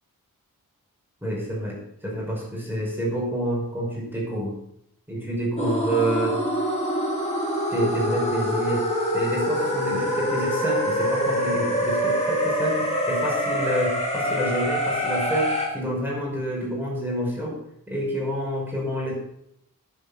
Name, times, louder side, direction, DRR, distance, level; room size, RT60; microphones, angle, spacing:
voice 1, 1.2-4.5 5.1-6.4 7.7-8.9 9.1-17.6 17.9-19.1, right 1 dB, 5° right, -4 dB, 5.9 m, -28 dB
sound 1, 5.6-15.7, equal, 20° left, 3.0 m, -25 dB
9.8 x 7.8 x 7.0 m, 0.76 s
wide cardioid pair, 120°, 35 cm